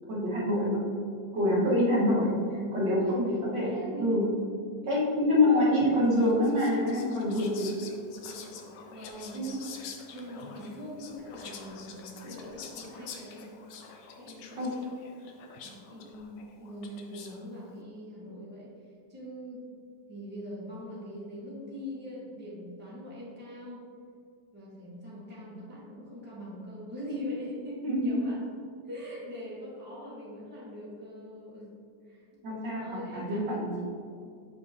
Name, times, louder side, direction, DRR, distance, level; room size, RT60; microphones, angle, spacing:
voice 1, 0.1-0.8 1.3-3.7 4.0-4.2 4.9-7.7 9.3-9.6 14.6-14.7 27.8-28.2 32.4-33.8, left 1 dB, 80° right, -7 dB, 2.3 m, -26 dB
voice 2, 3.6-4.3 4.8-4.9 5.4-5.9 8.3-8.6 8.9-9.5 10.1-13.5 14.2-15.2 15.6-18.8 19.1-19.7 20.1-23.8 24.5-28.5 28.9-31.7 32.1-32.2 32.8-33.8, equal, 5° right, -7 dB, 1.1 m, -42 dB
Whispering, 6.1-17.5, left 6 dB, 80° left, 1.3 m, -47 dB
6.6 x 5.4 x 2.8 m, 2.3 s
omnidirectional pair, 1.9 m